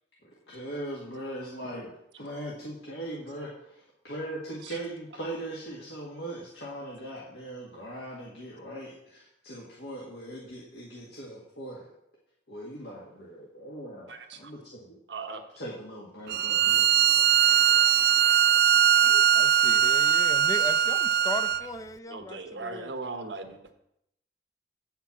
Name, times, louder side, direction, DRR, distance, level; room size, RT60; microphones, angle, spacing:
voice 1, 0.2-1.9 2.2-3.8 4.0-11.8 12.5-14.1 14.4-15.0 15.6-17.2, right 1 dB, 75° left, -5 dB, 1.9 m, -40 dB
voice 2, 14.1-14.5 15.1-15.4 22.1-23.7, right 3 dB, 85° right, 6 dB, 1.2 m, -38 dB
Bowed string instrument, 16.3-21.7, right 10 dB, 65° right, 0.4 m, -21 dB
voice 3, 19.0-22.9, left 2 dB, 20° left, 10 dB, 0.5 m, -38 dB
8.5 x 5.8 x 7.2 m, 0.80 s
head